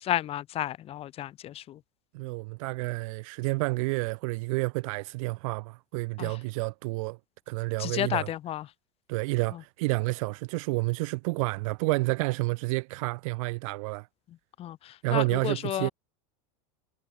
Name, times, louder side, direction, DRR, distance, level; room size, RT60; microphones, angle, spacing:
voice 1, 0.0-1.8 6.2-6.4 7.8-8.7 9.5-9.6 14.6-15.9, left 12 dB, 35° left, 1.0 m, -32 dB
voice 2, 2.1-7.2 7.5-8.3 9.1-14.1 15.0-15.9, right 25 dB, 70° right, 0.4 m, -30 dB
supercardioid pair, 135°, 18 cm